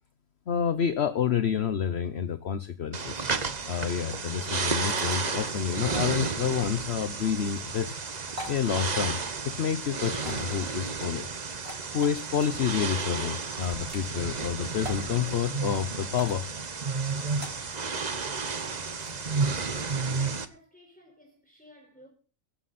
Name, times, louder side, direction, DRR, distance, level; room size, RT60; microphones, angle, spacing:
voice 1, 0.5-3.2 3.7-8.0 8.5-9.2 9.4-11.3 11.9-16.5, left 8 dB, 55° left, 1.0 m, -29 dB
sound 1, 2.9-20.5, right 4 dB, 35° right, 1.0 m, -32 dB
sound 2, 4.9-5.2 7.4-7.6 8.3-8.6 10.1-10.6 11.5-12.5 13.4-14.1 14.8-15.1 16.1-16.5 17.3-17.7 18.6-19.2, right 1 dB, 50° right, 4.2 m, -42 dB
voice 2, 20.1-22.1, equal, 5° left, 4.8 m, -54 dB
16.5 x 15.0 x 4.2 m
omnidirectional pair, 1.4 m